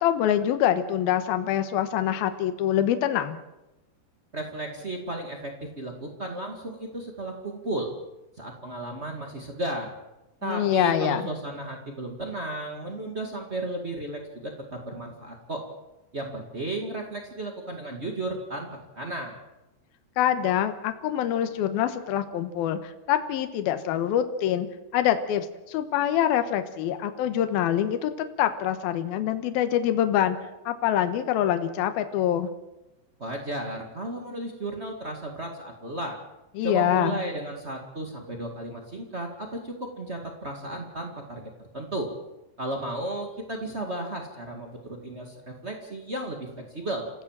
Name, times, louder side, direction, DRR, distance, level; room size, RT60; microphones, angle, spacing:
voice 1, 0.0-3.4 10.4-11.3 20.2-24.7 24.9-30.4 30.7-32.5 36.6-37.2, left 11 dB, 70° left, 8 dB, 2.6 m, -25 dB
voice 2, 4.3-7.9 8.4-9.9 10.4-15.6 16.1-18.7 18.9-19.4 33.2-36.2 36.6-42.1 42.6-47.1, right 1 dB, 75° right, 2 dB, 0.6 m, -34 dB
28.0 x 15.5 x 7.5 m, 0.98 s
omnidirectional pair, 5.3 m